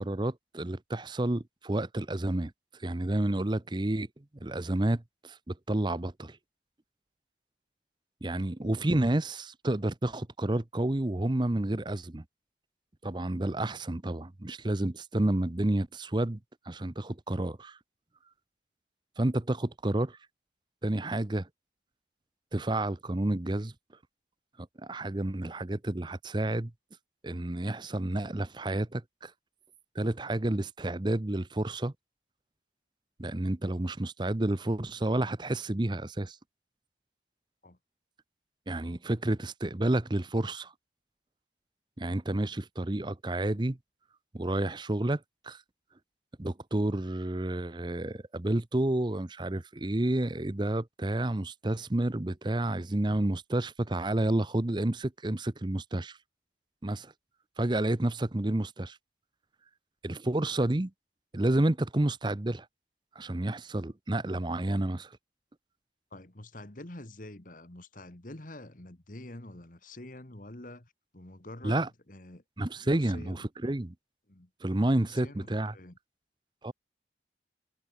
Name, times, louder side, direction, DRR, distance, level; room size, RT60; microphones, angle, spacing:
voice 1, 0.0-2.5 2.8-4.1 4.4-6.4 8.2-12.2 13.0-16.4 16.7-17.8 19.2-20.2 20.8-21.5 22.5-23.7 24.8-26.7 27.2-29.3 29.9-31.9 33.2-36.4 38.7-40.7 42.0-43.8 44.3-45.6 46.4-56.2 56.8-57.1 57.6-59.0 60.0-60.9 61.3-62.7 63.2-65.2 71.6-71.9 72.6-73.9 74.6-75.7 76.6-76.7, right 1 dB, 25° right, 0.7 m, -30 dB
voice 2, 66.1-72.4 72.8-73.5 74.3-74.5 75.0-76.0, left 1 dB, 45° left, 1.8 m, -47 dB
head